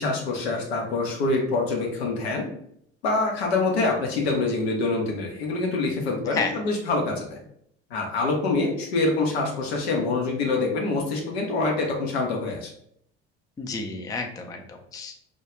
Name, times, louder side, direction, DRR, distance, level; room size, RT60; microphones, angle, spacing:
voice 1, 0.0-2.4 3.0-7.4 7.9-12.7, left 3 dB, 80° left, 0 dB, 0.7 m, -25 dB
voice 2, 13.6-15.2, left 4 dB, 10° left, 4 dB, 0.3 m, -31 dB
2.2 x 2.2 x 2.9 m, 0.70 s
hypercardioid pair, 65°, 32 cm